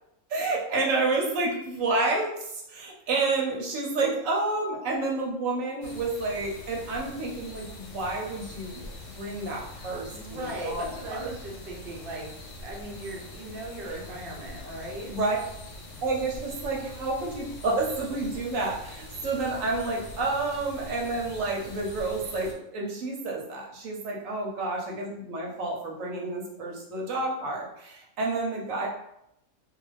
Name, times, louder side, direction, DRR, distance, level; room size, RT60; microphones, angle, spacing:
voice 1, 0.3-8.8 9.1-11.2 15.1-15.4 16.0-28.9, right 3 dB, 85° right, -2 dB, 1.1 m, -29 dB
sound 1, 5.8-22.5, left 2 dB, 70° left, 1.0 m, -43 dB
voice 2, 10.1-12.3 12.6-15.1, right 1 dB, 55° right, -1 dB, 0.8 m, -38 dB
2.4 x 2.4 x 3.2 m, 0.79 s
omnidirectional pair, 1.4 m